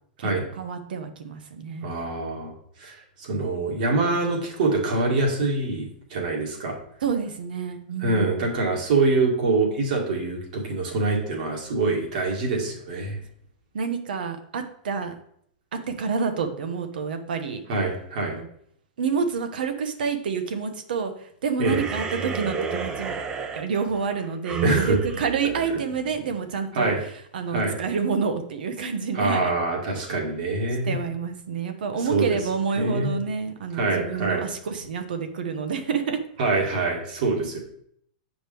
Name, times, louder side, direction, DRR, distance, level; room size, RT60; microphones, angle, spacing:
voice 1, 0.6-1.9 7.0-8.4 13.7-15.1 15.7-17.6 18.4-18.5 19.0-23.2 23.5-29.5 30.8-36.2, right 5 dB, 85° right, 7 dB, 1.0 m, -28 dB
voice 2, 1.8-2.5 2.8-5.9 6.1-6.8 8.0-13.2 17.7-18.4 21.6-21.8 24.6-25.0 26.7-27.0 27.5-27.8 29.1-31.0 32.1-32.3 32.8-33.2 33.7-34.4 36.4-37.6, right 3 dB, 65° right, 0 dB, 2.1 m, -24 dB
sound 1, 21.6-26.3, right 4 dB, 15° right, 0.5 m, -32 dB
7.6 x 5.1 x 3.4 m, 0.67 s
supercardioid pair, 160°, 5 cm